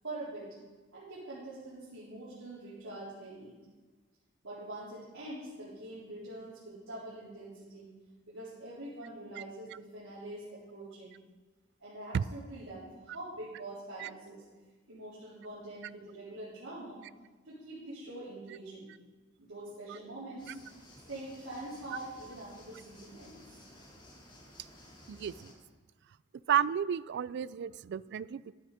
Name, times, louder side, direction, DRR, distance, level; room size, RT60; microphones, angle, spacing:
voice 1, 0.0-0.5 0.9-3.6 4.4-7.9 8.3-11.1 11.8-14.4 14.9-17.0 17.4-18.9 19.4-20.5 21.1-23.6, right 1 dB, 85° right, -11 dB, 3.9 m, -44 dB
sound 1, 20.4-25.5, left 1 dB, 25° left, 2.3 m, -55 dB
voice 2, 25.1-25.5 26.5-28.5, right 8 dB, 60° right, 19 dB, 0.3 m, -32 dB
11.5 x 9.5 x 5.0 m, 1.3 s
head